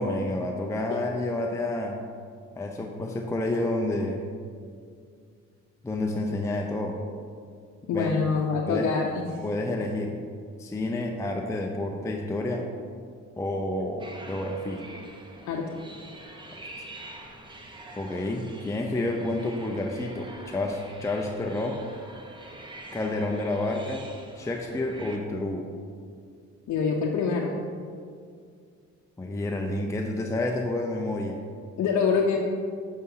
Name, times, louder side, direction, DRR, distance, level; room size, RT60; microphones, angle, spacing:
voice 1, 0.0-2.0 2.6-4.3 5.8-7.0 7.9-8.2 8.7-8.9 9.4-10.2 10.6-12.7 13.4-14.8 16.8-16.9 18.0-21.8 22.9-24.1 24.4-25.7 29.2-31.4, left 2 dB, 10° left, 2 dB, 0.5 m, -29 dB
voice 2, 7.9-9.4 15.5-15.6 26.7-27.6 31.8-32.4, left 5 dB, 65° left, -1 dB, 0.7 m, -25 dB
sound 1, 14.0-25.2, right 1 dB, 15° right, 0.8 m, -45 dB
6.8 x 5.4 x 3.8 m, 2.2 s
cardioid pair, 90°, 30 cm